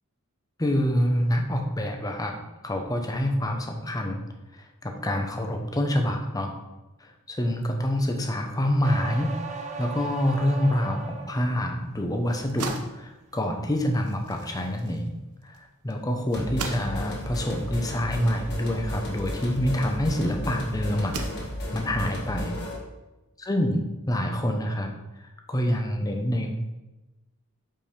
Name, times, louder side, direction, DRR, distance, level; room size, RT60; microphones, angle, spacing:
voice 1, 0.6-2.4 2.6-4.2 4.8-6.5 7.0-15.1 15.4-21.2 21.7-22.6 23.4-24.9 25.5-26.5, left 1 dB, 15° left, 3 dB, 0.8 m, -26 dB
sound 1, 8.8-11.5 12.0-12.5, right 5 dB, 30° right, 0.7 m, -37 dB
sound 2, 12.1-20.2 20.9-21.9, right 4 dB, 85° right, 0.8 m, -41 dB
sound 3, 16.3-22.9, equal, 50° left, 1.7 m, -34 dB
5.6 x 4.8 x 5.0 m, 1.0 s
head